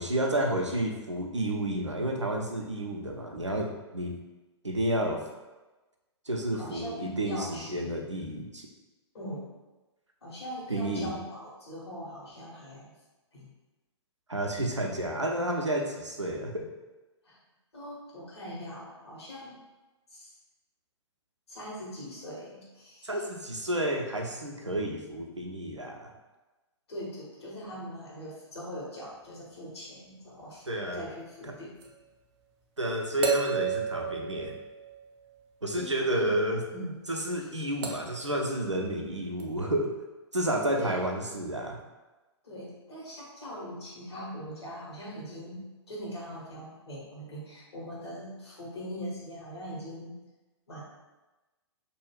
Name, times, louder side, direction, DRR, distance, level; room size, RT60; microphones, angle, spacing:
voice 1, 0.0-4.2 4.6-5.2 6.3-8.7 10.7-11.1 14.3-16.7 23.0-26.1 30.7-31.1 31.4-31.5 32.8-34.5 35.6-36.6 37.1-39.9 40.3-41.8, right 1 dB, 90° right, 1 dB, 0.5 m, -30 dB
voice 2, 6.5-8.2 9.1-9.5 10.2-13.0 13.3-13.5 17.2-17.4 17.7-19.6 20.1-20.3 21.5-23.2 26.9-30.7 30.9-31.7 35.7-36.4 36.7-37.0 37.3-37.7 40.7-41.0 42.4-50.1 50.7-50.8, equal, 65° left, -5 dB, 1.3 m, -41 dB
sound 1, 31.8-31.9 33.2-35.3 37.8-38.3 39.4-39.5, right 7 dB, 25° right, 0.3 m, -32 dB
2.7 x 2.3 x 3.2 m, 1.1 s
figure-of-eight pair, 115°, 15 cm